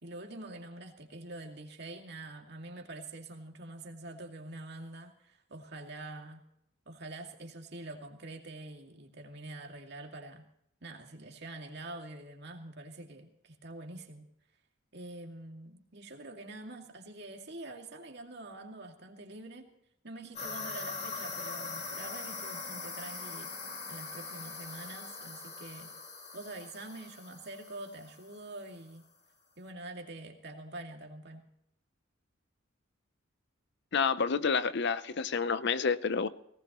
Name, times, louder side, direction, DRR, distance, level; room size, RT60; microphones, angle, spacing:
voice 1, 0.0-6.4 6.9-10.4 10.8-14.3 14.9-19.7 20.0-23.5 23.9-25.9 26.3-29.0 29.6-31.5, right 2 dB, 55° right, 2 dB, 2.3 m, -45 dB
sound 1, 20.4-28.6, left 4 dB, 35° left, 2.3 m, -42 dB
voice 2, 33.9-36.3, left 5 dB, 55° left, 14 dB, 0.6 m, -29 dB
19.0 x 18.5 x 3.0 m, 0.75 s
head